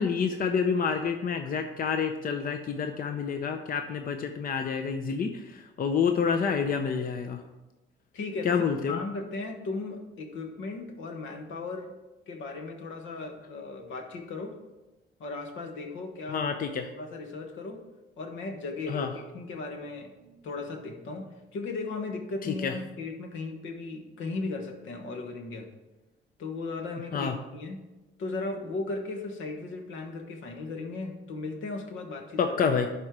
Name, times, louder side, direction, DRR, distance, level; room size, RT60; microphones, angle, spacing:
voice 1, 0.0-7.4 8.4-9.0 16.3-16.9 18.9-19.1 22.4-22.8 27.1-27.4 32.4-32.9, left 6 dB, 45° left, 6 dB, 0.6 m, -28 dB
voice 2, 8.1-11.9 12.3-14.5 15.2-16.5 16.7-17.8 18.2-19.1 19.3-25.7 26.4-27.8 28.2-32.6, left 3 dB, 75° left, 4 dB, 1.4 m, -36 dB
11.5 x 4.4 x 4.7 m, 1.1 s
cardioid pair, 90°, 20 cm